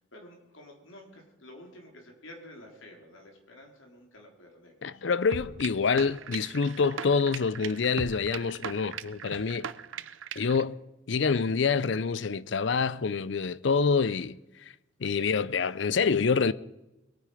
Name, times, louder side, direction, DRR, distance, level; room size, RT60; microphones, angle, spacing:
voice 1, 0.1-5.0 14.0-14.2, left 1 dB, 90° left, 3.8 m, -50 dB
voice 2, 4.8-9.7 10.4-10.8 11.1-14.4 15.0-16.5, left 5 dB, 70° left, 0.5 m, -26 dB
sound 1, 5.3-10.6, right 7 dB, 90° right, 0.7 m, -39 dB
23.0 x 9.6 x 5.0 m
head